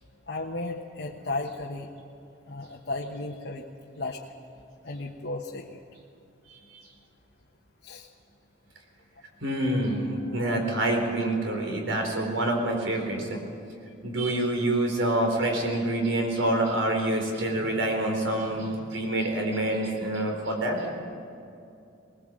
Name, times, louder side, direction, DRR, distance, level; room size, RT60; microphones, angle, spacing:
voice 1, 0.3-1.9 2.5-3.6 3.9-4.2 4.8-5.8 7.8-8.1, left 2 dB, 55° left, -2 dB, 1.1 m, -34 dB
voice 2, 9.4-13.4 14.0-20.9, right 1 dB, 80° right, 2 dB, 4.1 m, -27 dB
20.0 x 19.5 x 7.6 m, 2.6 s
head